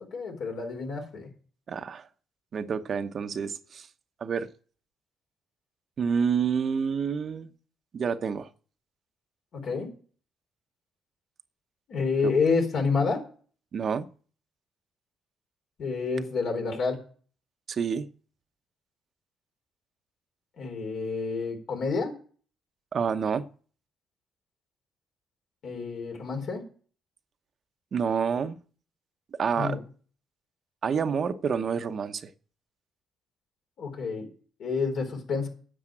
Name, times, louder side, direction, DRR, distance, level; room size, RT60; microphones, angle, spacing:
voice 1, 0.1-1.3 9.5-9.9 11.9-13.3 15.8-17.0 20.6-22.2 25.6-26.6 29.6-29.8 33.8-34.3 34.6-35.5, left 4 dB, 70° left, 4.1 m, -29 dB
voice 2, 1.7-2.1 2.5-3.9 4.2-4.5 6.0-7.5 7.9-8.5 12.2-12.3 13.7-14.0 17.7-18.1 22.9-23.4 27.9-28.6 29.3-29.8 30.8-32.3, right 6 dB, 50° right, 0.9 m, -28 dB
9.9 x 7.2 x 9.0 m
cardioid pair, 90°, 0 cm